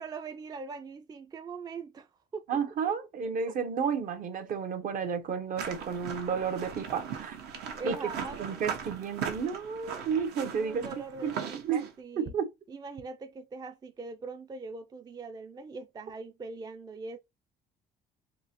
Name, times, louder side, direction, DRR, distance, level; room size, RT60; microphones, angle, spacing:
voice 1, 0.0-2.5 3.5-3.6 7.7-8.5 10.6-12.3 12.7-17.2, right 4 dB, 25° right, 0.4 m, -41 dB
voice 2, 2.5-7.4 7.9-8.0 8.4-10.8 11.2-11.4 11.6-11.8 12.2-12.5, right 6 dB, 55° right, 0.8 m, -31 dB
sound 1, 5.6-11.9, right 7 dB, 75° right, 1.1 m, -39 dB
3.7 x 2.8 x 2.9 m
cardioid pair, 110°, 17 cm